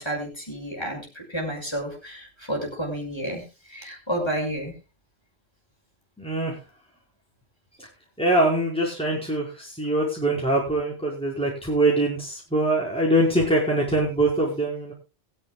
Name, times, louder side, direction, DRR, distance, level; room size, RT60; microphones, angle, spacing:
voice 1, 0.0-4.7, right 1 dB, 25° left, 0 dB, 5.8 m, -31 dB
voice 2, 6.2-6.5 8.2-14.9, right 1 dB, 5° left, -4 dB, 4.9 m, -23 dB
22.5 x 10.5 x 2.3 m, 0.29 s
omnidirectional pair, 1.1 m